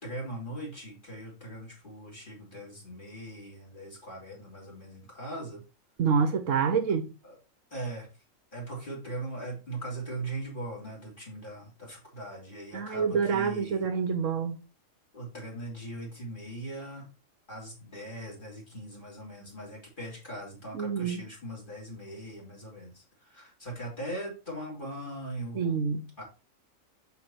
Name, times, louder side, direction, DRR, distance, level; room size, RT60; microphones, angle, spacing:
voice 1, 0.0-5.6 7.2-7.4 7.7-8.1 8.5-13.8 15.1-17.1 17.5-23.0 23.3-25.6 26.2-26.3, right 1 dB, 35° left, 3.6 m, -40 dB
voice 2, 6.0-7.1 12.7-14.6 20.7-21.2 25.5-26.0, right 6 dB, 70° right, 1.2 m, -27 dB
5.9 x 5.7 x 4.4 m
omnidirectional pair, 1.4 m